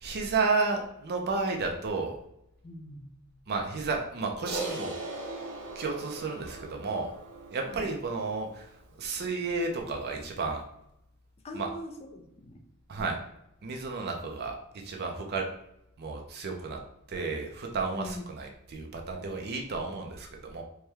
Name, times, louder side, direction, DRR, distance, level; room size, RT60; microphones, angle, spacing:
voice 1, 0.0-2.2 3.5-4.9 5.8-7.1 7.5-8.6 9.0-10.6 11.5-11.7 12.9-13.2 13.6-14.6 14.8-15.5 16.0-16.8 17.1-20.6, right 4 dB, 45° right, 2 dB, 0.5 m, -32 dB
voice 2, 2.6-3.1 7.7-7.9 11.4-12.6 13.0-13.1 17.9-18.2, left 1 dB, 30° left, 3 dB, 0.5 m, -42 dB
Crash cymbal, 4.5-9.0, right 2 dB, 75° right, 1.4 m, -40 dB
4.5 x 2.2 x 3.3 m, 0.80 s
head